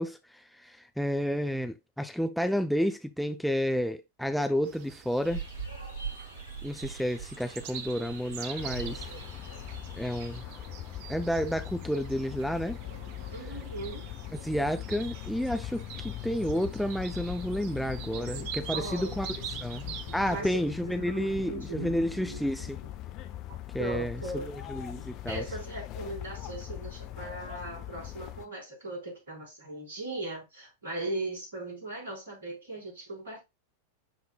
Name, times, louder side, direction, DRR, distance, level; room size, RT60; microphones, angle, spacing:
voice 1, 0.0-5.4 6.6-9.1 10.0-10.4 11.1-12.8 14.4-19.3 19.6-19.8 20.1-22.8 23.7-25.4, equal, ahead, 0.5 m, -31 dB
sound 1, 4.6-20.4, right 8 dB, 45° right, 0.7 m, -45 dB
sound 2, 5.2-10.4, right 5 dB, 90° left, 1.5 m, -42 dB
sound 3, 8.6-28.5, left 13 dB, 40° left, 0.7 m, -41 dB
voice 2, 13.3-14.1 18.1-23.2 23.5-24.5 24.9-33.4, right 2 dB, 65° right, 4.3 m, -39 dB
11.0 x 3.7 x 2.3 m
figure-of-eight pair, 90°, 0 cm